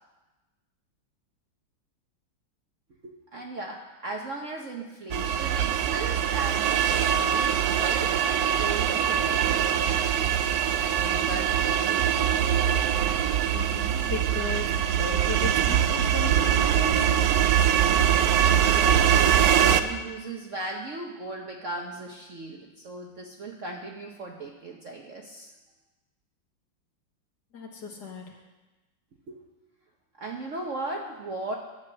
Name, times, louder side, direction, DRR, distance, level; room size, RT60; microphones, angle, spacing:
voice 1, 3.0-8.2 8.6-12.1 18.6-25.5 29.3-29.4 30.2-31.6, right 2 dB, 50° right, 1 dB, 1.0 m, -37 dB
sound 1, 5.1-19.8, right 9 dB, 80° right, 0.8 m, -23 dB
voice 2, 13.5-17.3 27.5-28.3, left 3 dB, 55° left, 1 dB, 2.0 m, -35 dB
11.5 x 7.9 x 6.6 m, 1.1 s
omnidirectional pair, 2.2 m